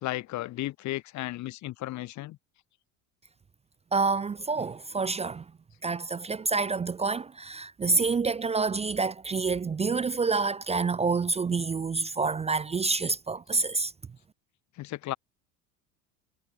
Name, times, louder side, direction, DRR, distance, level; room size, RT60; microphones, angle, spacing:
voice 1, 0.0-2.4 14.8-15.2, left 16 dB, 50° left, 0.8 m, -34 dB
voice 2, 3.9-5.4 5.8-13.9, right 4 dB, 15° right, 0.5 m, -28 dB
supercardioid pair, 95°, 37 cm